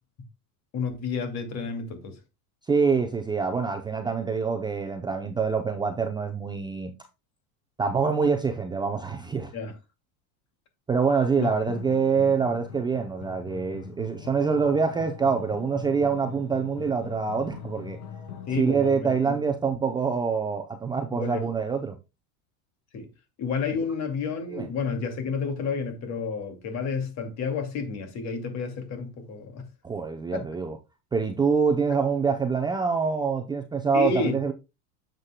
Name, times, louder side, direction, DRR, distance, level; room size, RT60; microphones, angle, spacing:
voice 1, 0.7-2.2 9.5-9.7 11.4-11.5 18.5-19.3 21.1-21.4 22.9-23.1 23.4-29.6 30.3-30.4 33.9-34.4, left 5 dB, 40° left, 2.3 m, -30 dB
voice 2, 2.7-6.9 7.8-9.5 10.9-18.0 18.6-22.0 24.5-24.7 29.8-30.8 31.1-34.5, right 5 dB, 10° right, 0.6 m, -25 dB
sound 1, 11.5-18.6, left 8 dB, 80° left, 2.5 m, -42 dB
9.5 x 7.6 x 2.2 m
supercardioid pair, 135°, 42 cm